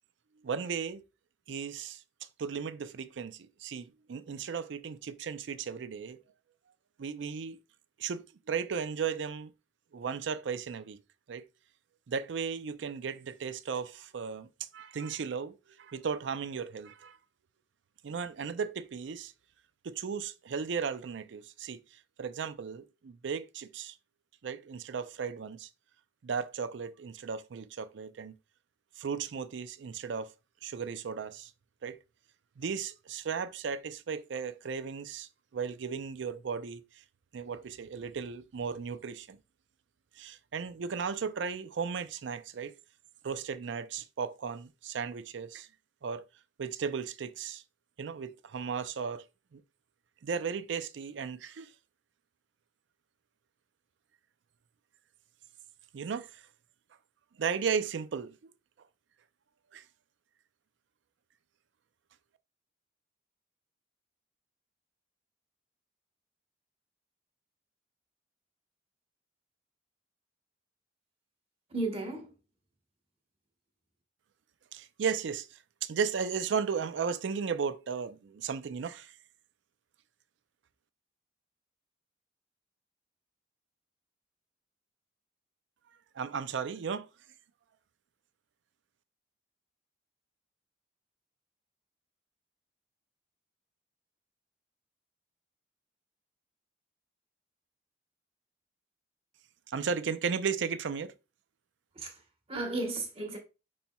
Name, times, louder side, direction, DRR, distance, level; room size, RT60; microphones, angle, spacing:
voice 1, 0.4-1.0 1.5-2.0 2.4-6.2 7.0-7.6 8.0-9.5 9.9-11.0 11.3-11.4 12.1-17.2 18.0-19.3 19.8-21.8 22.2-24.0 24.4-25.7 26.2-28.3 29.0-30.3 30.6-31.5 31.8-32.0 32.6-36.8 37.3-39.4 40.2-42.7 43.2-45.7 46.0-46.2 46.6-47.6 48.0-49.2 49.5-49.6 50.2-51.7 55.9-56.4 57.4-58.4 59.7-59.8 74.7-79.2 86.1-87.1 99.7-101.1, right 6 dB, 75° right, 0.4 m, -35 dB
voice 2, 71.7-72.4 101.9-102.2 102.5-103.4, right 2 dB, 30° right, 1.1 m, -34 dB
5.4 x 4.3 x 2.2 m
head